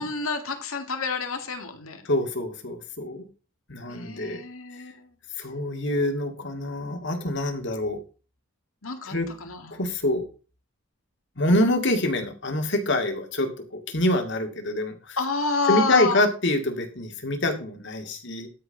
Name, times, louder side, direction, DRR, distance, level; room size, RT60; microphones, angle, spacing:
voice 1, 0.0-2.0 3.9-5.1 8.8-9.8 15.2-16.2, left 4 dB, 70° left, 6 dB, 2.1 m, -29 dB
voice 2, 2.0-3.3 3.7-4.4 5.4-8.0 9.0-9.3 9.7-10.2 11.4-15.2 15.7-18.5, left 1 dB, 55° left, 5 dB, 2.2 m, -26 dB
12.5 x 4.7 x 5.8 m, 0.34 s
head